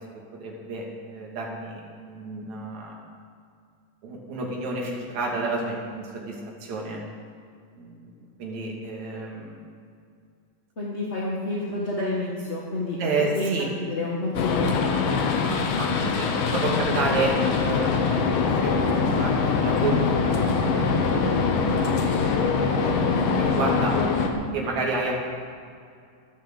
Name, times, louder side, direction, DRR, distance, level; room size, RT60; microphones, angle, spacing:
voice 1, 0.0-3.0 4.0-7.0 7.8-8.1 8.4-9.6 13.0-13.7 15.6-20.1 20.4-23.9 24.5-25.3, right 3 dB, 55° right, -2 dB, 3.6 m, -31 dB
voice 2, 10.8-13.0 13.3-13.5 13.8-15.0, left 2 dB, 30° left, -5 dB, 1.4 m, -29 dB
sound 1, 14.3-24.3, left 5 dB, 80° left, 2.9 m, -23 dB
14.5 x 10.5 x 7.6 m, 2.3 s
omnidirectional pair, 3.9 m